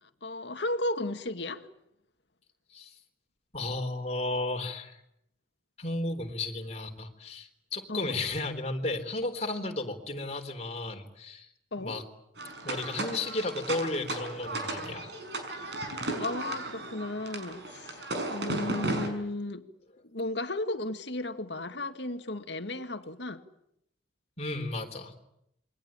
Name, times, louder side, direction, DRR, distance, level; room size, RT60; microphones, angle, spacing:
voice 1, 0.0-1.7 7.9-8.1 11.7-12.0 16.2-19.7 20.0-23.4, left 2 dB, 70° left, 2.0 m, -34 dB
voice 2, 3.5-5.0 5.8-11.5 11.8-12.0 12.6-15.1 24.4-25.1, left 2 dB, 35° left, 3.8 m, -33 dB
sound 1, 12.4-19.1, right 2 dB, 65° right, 6.1 m, -35 dB
28.0 x 23.5 x 8.9 m
head